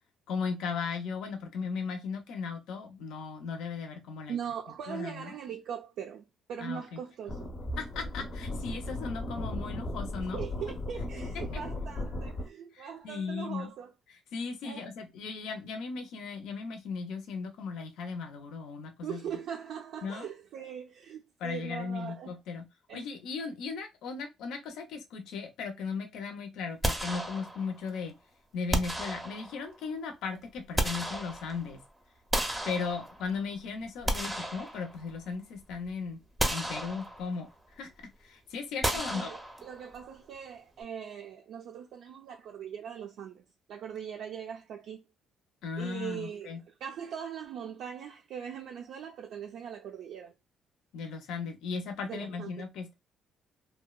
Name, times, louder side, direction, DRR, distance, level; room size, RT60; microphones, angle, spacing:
voice 1, 0.3-4.4 4.9-5.3 6.6-7.0 7.8-10.4 11.5-11.6 12.7-13.7 14.3-19.2 20.0-20.3 21.4-22.7 22.9-28.1 28.5-31.8 32.6-36.2 36.5-37.5 37.8-37.9 38.2-39.3 45.6-46.6 50.9-52.9, left 5 dB, 85° left, 0.5 m, -37 dB
voice 2, 4.3-7.5 10.2-13.9 14.6-14.9 19.0-22.3 22.9-23.0 38.9-45.1 45.8-50.3 52.0-52.5, right 8 dB, 75° right, 0.4 m, -41 dB
sound 1, 7.3-12.5, left 1 dB, 35° left, 0.5 m, -36 dB
sound 2, 26.8-27.9 28.7-29.8 30.4-31.8 32.3-33.4 33.8-35.3 35.7-35.8 36.4-37.5 38.8-39.9, right 1 dB, 10° right, 0.5 m, -33 dB
2.7 x 2.1 x 2.2 m
cardioid pair, 120°, 0 cm